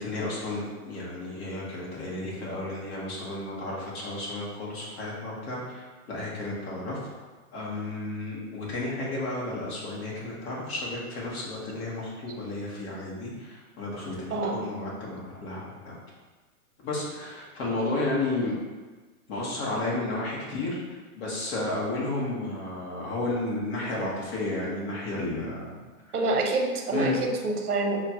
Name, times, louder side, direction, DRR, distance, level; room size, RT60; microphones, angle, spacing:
voice 1, 0.0-7.0 7.5-16.0 16.8-18.5 19.3-25.8 26.1-26.2 26.9-27.2, left 2 dB, 45° left, -5 dB, 1.4 m, -32 dB
voice 2, 26.1-28.0, right 3 dB, 80° right, 2 dB, 0.9 m, -27 dB
5.9 x 2.4 x 2.9 m, 1.3 s
hypercardioid pair, 150°, 45 cm